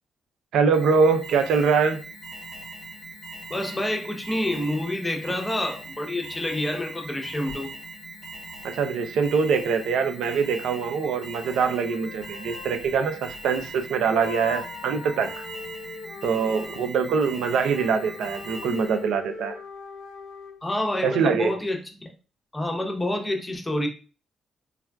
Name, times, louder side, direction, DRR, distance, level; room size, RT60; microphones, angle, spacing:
voice 1, 0.5-2.0 8.6-15.4 16.2-19.6 21.0-21.5, right 5 dB, 75° right, 7 dB, 0.4 m, -23 dB
Alarm, 0.7-19.1, right 2 dB, 55° right, 1.3 m, -41 dB
voice 2, 3.5-7.7 20.6-22.1 22.5-23.9, left 1 dB, 15° left, 3 dB, 0.7 m, -28 dB
sound 1, 7.5-7.6 11.0-13.8 14.1-17.0 17.6-20.6, left 5 dB, 75° left, 0.3 m, -41 dB
3.3 x 2.2 x 2.2 m, 0.35 s
supercardioid pair, 55°, 0 cm